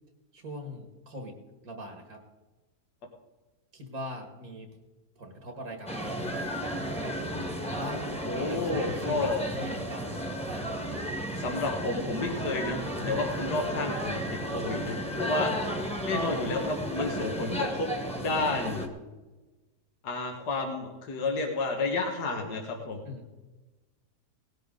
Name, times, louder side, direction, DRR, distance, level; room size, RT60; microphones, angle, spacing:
voice 1, 0.3-1.4 1.6-2.2 3.7-4.7 5.2-5.9 6.6-10.1 11.5-11.6 13.0-13.5 15.5-15.6 23.0-23.3, left 1 dB, 60° right, 4 dB, 2.1 m, -41 dB
sound 1, 5.9-18.9, equal, 5° left, 1.4 m, -33 dB
voice 2, 8.3-9.4 11.4-15.5 16.0-17.9 18.2-18.8 20.0-23.0, left 3 dB, 75° left, 2 dB, 2.0 m, -31 dB
18.0 x 11.5 x 3.8 m, 1.2 s
omnidirectional pair, 1.8 m